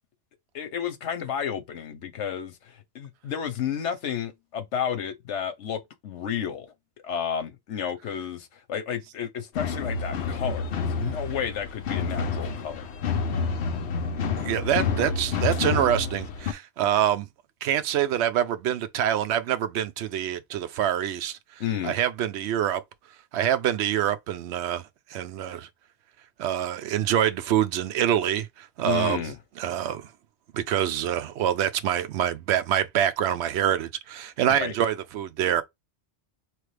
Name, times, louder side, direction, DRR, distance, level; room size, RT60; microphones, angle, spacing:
voice 1, 0.5-6.7 7.0-12.8 21.6-21.9 28.8-29.4 34.6-34.7, left 8 dB, 85° left, 1.1 m, -32 dB
sound 1, 9.5-16.5, left 5 dB, 70° left, 1.0 m, -29 dB
voice 2, 14.4-17.3 17.6-21.4 21.8-22.8 23.3-25.7 26.4-29.2 29.6-30.1 30.5-35.6, right 10 dB, 75° right, 0.9 m, -25 dB
4.3 x 3.2 x 3.3 m
omnidirectional pair, 1.2 m